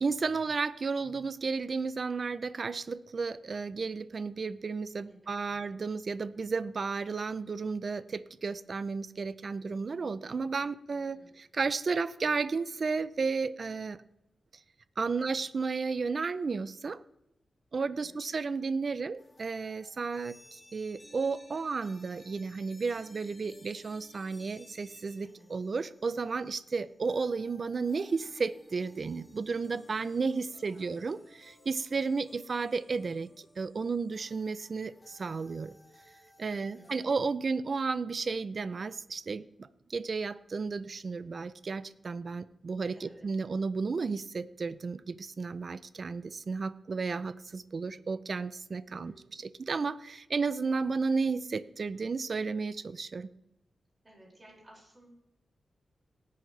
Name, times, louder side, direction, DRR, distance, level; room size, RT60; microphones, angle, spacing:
voice 1, 0.0-14.0 15.0-17.0 17.7-35.7 36.4-53.3, right 4 dB, 50° right, 15 dB, 0.5 m, -33 dB
voice 2, 5.0-5.6 11.0-11.4 15.2-15.4 17.8-18.1 25.2-25.5 30.7-31.0 36.5-37.1 42.9-43.3 48.9-49.4 54.0-55.1, right 1 dB, 25° right, -2 dB, 5.6 m, -58 dB
sound 1, 19.2-37.0, equal, 15° left, 3.4 m, -59 dB
17.5 x 9.4 x 3.3 m, 0.86 s
wide cardioid pair, 115°, 0 cm